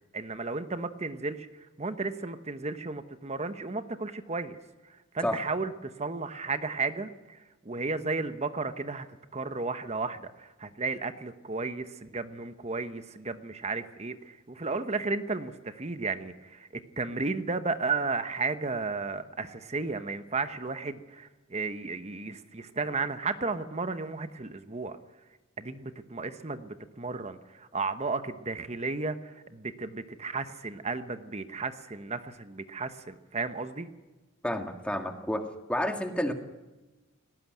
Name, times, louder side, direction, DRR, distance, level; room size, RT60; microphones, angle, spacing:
voice 1, 0.1-4.6 4.8-9.1 9.3-25.0 25.6-33.9, right 3 dB, 30° right, 10 dB, 1.0 m, -34 dB
voice 2, 34.4-35.4 35.7-36.3, left 1 dB, 5° left, 5 dB, 1.8 m, -30 dB
18.5 x 18.0 x 9.3 m, 1.1 s
head